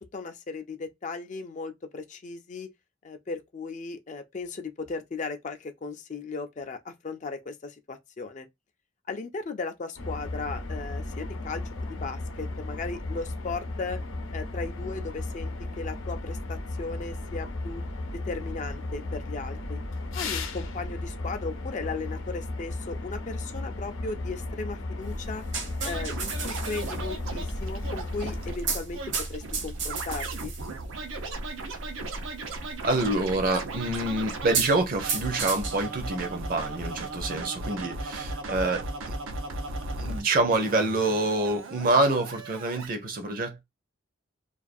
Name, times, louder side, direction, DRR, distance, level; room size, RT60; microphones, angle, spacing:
voice 1, 0.1-2.7 3.0-8.5 9.1-11.6 11.9-14.0 14.3-17.8 18.2-19.8 20.1-25.4 25.8-30.5, left 4 dB, 40° left, 0.4 m, -36 dB
sound 1, 10.0-28.5, left 2 dB, 85° left, 0.6 m, -35 dB
sound 2, 25.0-37.4, right 4 dB, 65° right, 0.9 m, -36 dB
Scratching (performance technique), 25.8-34.6 35.0-40.2 40.5-42.9, right 3 dB, 85° right, 0.6 m, -37 dB
voice 2, 32.8-39.1 40.0-43.6, right 2 dB, 45° right, 0.6 m, -26 dB
2.4 x 2.3 x 2.5 m
head